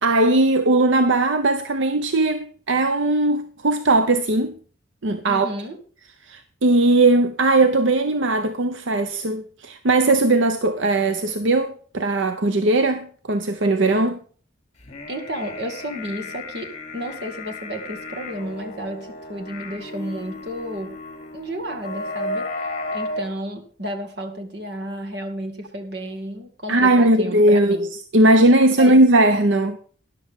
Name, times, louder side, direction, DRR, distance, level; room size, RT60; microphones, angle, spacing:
voice 1, 0.0-4.5 5.0-5.5 6.3-14.2 26.7-29.8, right 2 dB, 80° right, 0.8 m, -18 dB
voice 2, 5.2-5.8 15.1-21.0 21.3-22.5 22.9-27.9 28.8-28.9, right 1 dB, 55° right, 2.2 m, -32 dB
sound 1, 14.8-23.3, left 2 dB, 35° left, 2.8 m, -34 dB
13.0 x 11.0 x 3.7 m
head